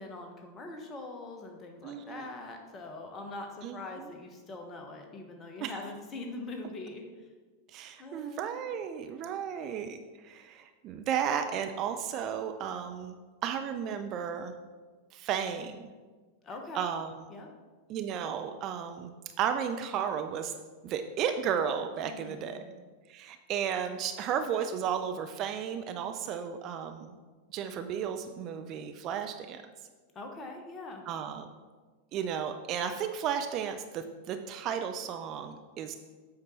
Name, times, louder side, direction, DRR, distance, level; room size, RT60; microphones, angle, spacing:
voice 1, 0.0-7.0 8.0-8.5 16.4-16.9 17.3-17.5 22.0-22.6 30.1-31.0, left 2 dB, 25° left, 2 dB, 1.2 m, -43 dB
voice 2, 1.8-2.3 3.6-4.1 5.6-5.7 7.7-10.0 10.2-14.5 15.1-15.9 16.7-17.1 17.9-20.5 20.8-22.6 23.1-27.1 27.5-29.6 31.1-31.5 32.1-36.0, right 8 dB, 35° right, 7 dB, 0.5 m, -34 dB
8.1 x 5.2 x 4.3 m, 1.4 s
figure-of-eight pair, 90°, 0 cm